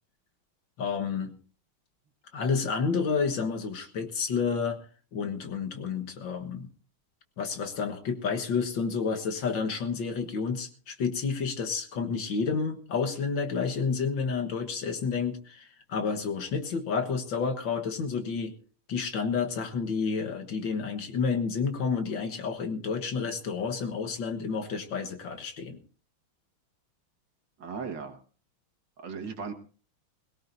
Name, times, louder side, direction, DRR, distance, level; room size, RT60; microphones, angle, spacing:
voice 1, 0.8-1.3 2.3-4.8 5.1-6.7 7.4-18.5 18.9-25.8, left 5 dB, 65° left, 6 dB, 2.0 m, -30 dB
voice 2, 27.6-28.2 29.0-29.5, right 5 dB, 60° right, 6 dB, 2.4 m, -37 dB
21.5 x 17.5 x 2.7 m, 0.37 s
omnidirectional pair, 2.3 m